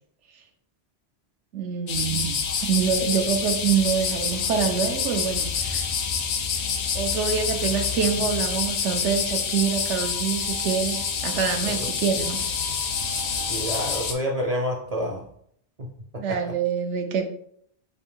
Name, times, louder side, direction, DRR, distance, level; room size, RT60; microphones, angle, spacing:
voice 1, 1.5-5.9 6.9-12.4 16.2-17.3, right 7 dB, 85° right, 5 dB, 1.0 m, -26 dB
sound 1, 1.9-14.1, left 6 dB, 75° left, 0.9 m, -27 dB
voice 2, 13.5-15.3 15.8-16.5, equal, 50° right, 1 dB, 0.5 m, -29 dB
5.0 x 2.5 x 3.6 m, 0.66 s
omnidirectional pair, 1.2 m